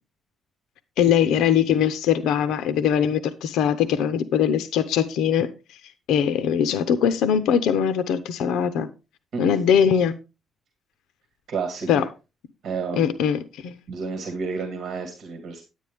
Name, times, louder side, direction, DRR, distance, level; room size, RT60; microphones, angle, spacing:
voice 1, 1.0-5.5 6.1-8.9 9.4-10.1 11.9-12.1 12.9-13.8, left 8 dB, 85° left, 0.7 m, -21 dB
voice 2, 11.5-12.0 12.6-13.1 13.9-15.6, right 5 dB, 50° right, 2.0 m, -30 dB
10.0 x 9.2 x 3.5 m
cardioid pair, 170°, 0 cm